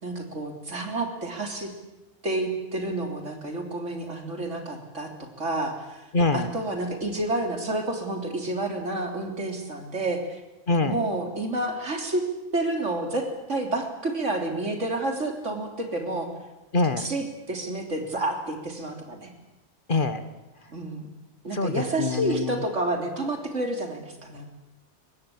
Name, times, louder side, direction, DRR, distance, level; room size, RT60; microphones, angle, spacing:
voice 1, 0.0-1.7 2.2-5.1 5.4-6.0 6.3-10.4 10.8-12.2 12.5-16.3 17.0-19.3 20.7-21.1 21.4-24.5, right 2 dB, 80° right, 4 dB, 3.7 m, -29 dB
voice 2, 6.1-6.5 10.7-11.0 16.7-17.0 19.9-20.2 21.5-22.6, left 3 dB, 45° left, 11 dB, 1.6 m, -24 dB
23.5 x 19.0 x 8.7 m, 1.0 s
omnidirectional pair, 1.2 m